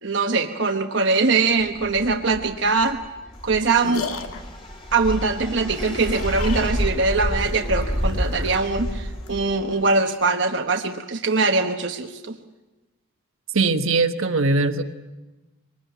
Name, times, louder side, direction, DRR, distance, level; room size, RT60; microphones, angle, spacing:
voice 1, 0.0-3.0 3.4-4.0 4.9-12.3, right 3 dB, 60° right, 4 dB, 1.1 m, -22 dB
sound 1, 1.6-9.9, equal, 25° left, 3.0 m, -29 dB
sound 2, 3.3-9.4, left 3 dB, 85° left, 2.0 m, -36 dB
voice 2, 13.5-14.8, right 3 dB, 75° right, 6 dB, 1.3 m, -20 dB
23.5 x 20.0 x 9.3 m, 1.1 s
head